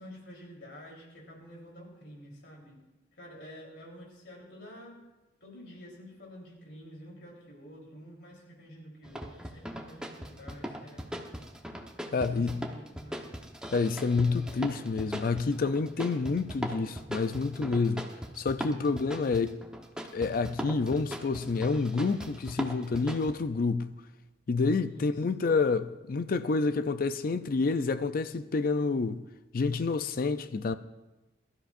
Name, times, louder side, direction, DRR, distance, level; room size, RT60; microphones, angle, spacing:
voice 1, 0.0-2.8 3.2-5.0 5.4-11.0 12.1-13.3 24.9-25.5, equal, 70° left, 3.7 m, -49 dB
sound 1, 9.0-23.3, equal, 5° right, 1.0 m, -39 dB
voice 2, 12.1-12.7 13.7-18.1 18.4-19.6 20.1-23.9 24.5-29.2 29.5-30.8, left 4 dB, 55° left, 0.4 m, -28 dB
22.0 x 12.5 x 2.5 m
head